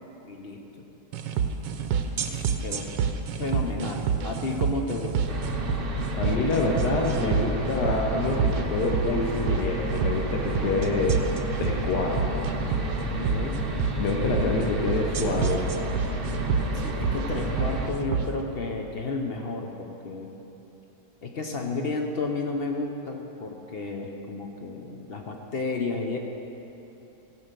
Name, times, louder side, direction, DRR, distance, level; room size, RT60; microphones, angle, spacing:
voice 1, 0.3-0.8 2.3-2.8 3.4-5.3 13.0-13.6 13.9-14.5 16.7-20.3 21.2-26.2, left 3 dB, 50° left, 2 dB, 0.7 m, -32 dB
sound 1, 1.1-18.3, right 7 dB, 85° right, 1.4 m, -29 dB
sound 2, 5.3-17.9, right 1 dB, 45° right, 0.8 m, -31 dB
voice 2, 6.1-11.2 11.6-12.4 14.0-15.6, left 3 dB, 70° left, -1 dB, 1.5 m, -27 dB
15.0 x 5.7 x 6.7 m, 3.0 s
omnidirectional pair, 1.9 m